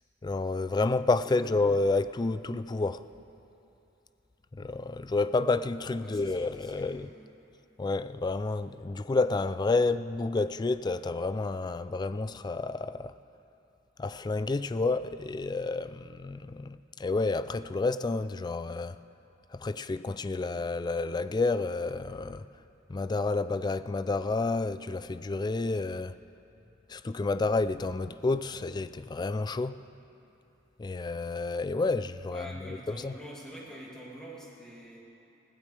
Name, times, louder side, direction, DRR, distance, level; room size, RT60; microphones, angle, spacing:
voice 1, 0.2-3.0 4.5-7.1 7.8-13.2 14.0-19.0 19.5-22.5 22.9-26.2 26.9-29.8 30.8-33.2, left 3 dB, 20° left, 0.3 m, -30 dB
voice 2, 1.2-1.6 6.0-7.3 32.3-35.0, equal, 5° left, 2.8 m, -46 dB
20.5 x 16.0 x 3.4 m
head